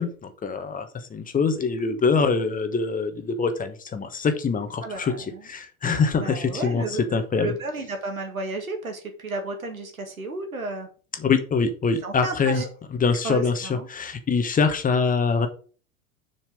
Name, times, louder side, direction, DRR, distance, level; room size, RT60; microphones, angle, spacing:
voice 1, 0.0-5.1 5.4-7.5 11.2-12.6 13.0-15.5, left 5 dB, 20° left, 8 dB, 1.3 m, -24 dB
voice 2, 1.8-2.3 4.8-5.5 6.1-10.9 12.0-12.7 13.2-13.9, right 3 dB, 80° right, 5 dB, 2.1 m, -33 dB
7.4 x 6.0 x 5.2 m, 0.39 s
figure-of-eight pair, 85°, 42 cm